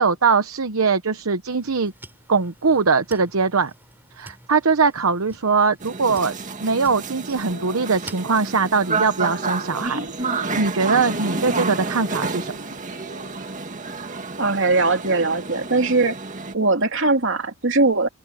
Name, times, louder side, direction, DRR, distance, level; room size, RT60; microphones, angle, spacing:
voice 1, 0.0-1.9 2.3-3.7 4.2-6.3 6.6-12.6, right 4 dB, 80° right, 1.0 m, -21 dB
sound 1, 1.5-8.8, right 1 dB, 10° right, 6.1 m, -47 dB
sound 2, 5.8-16.5, right 4 dB, 35° right, 1.9 m, -30 dB
sound 3, 7.4-8.0 8.8-11.7 12.0-13.5 14.7-16.1, left 1 dB, 60° left, 4.6 m, -43 dB
voice 2, 14.4-16.2 16.5-18.1, right 3 dB, 60° right, 3.0 m, -20 dB
open air
head